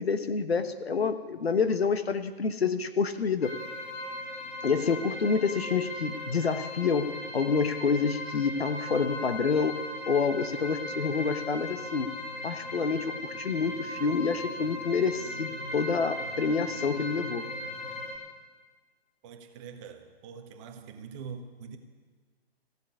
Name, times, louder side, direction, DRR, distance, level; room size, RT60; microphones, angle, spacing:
voice 1, 0.0-3.5 4.6-12.1 12.4-17.4, left 5 dB, 75° left, 10 dB, 1.2 m, -28 dB
sound 1, 3.4-18.2, left 1 dB, 20° left, 3.4 m, -38 dB
voice 2, 19.2-21.8, right 6 dB, 30° right, 6 dB, 1.4 m, -44 dB
15.0 x 8.0 x 9.8 m, 1.4 s
figure-of-eight pair, 130°, 31 cm